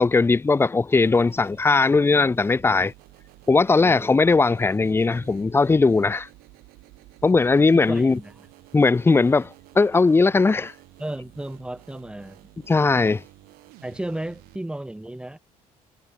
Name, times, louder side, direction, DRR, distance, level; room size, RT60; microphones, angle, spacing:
voice 1, 0.0-2.9 3.5-6.3 7.2-8.2 8.7-10.7 12.7-13.2, left 3 dB, 15° left, 0.6 m, -19 dB
sound 1, 0.9-14.6, right 20 dB, 85° right, 3.2 m, -51 dB
voice 2, 3.8-4.1 7.9-8.5 11.0-12.4 13.8-15.4, right 1 dB, 5° right, 2.5 m, -34 dB
cardioid pair, 95°, 15 cm